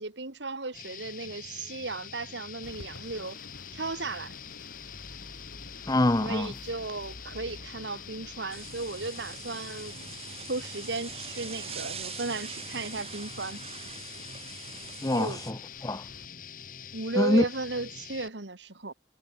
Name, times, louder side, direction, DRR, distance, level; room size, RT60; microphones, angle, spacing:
voice 1, 0.0-3.4 3.7-4.4 6.2-10.1 10.5-13.6 15.1-15.4 16.9-18.9, right 3 dB, 75° right, 1.9 m, -35 dB
sound 1, 0.7-18.3, left 8 dB, 45° left, 1.6 m, -45 dB
sound 2, 2.6-16.3, left 2 dB, 80° left, 3.2 m, -50 dB
voice 2, 5.8-6.5 15.0-16.1 17.1-17.5, left 1 dB, 20° left, 0.6 m, -25 dB
sound 3, 8.5-15.5, right 7 dB, 30° right, 4.6 m, -43 dB
head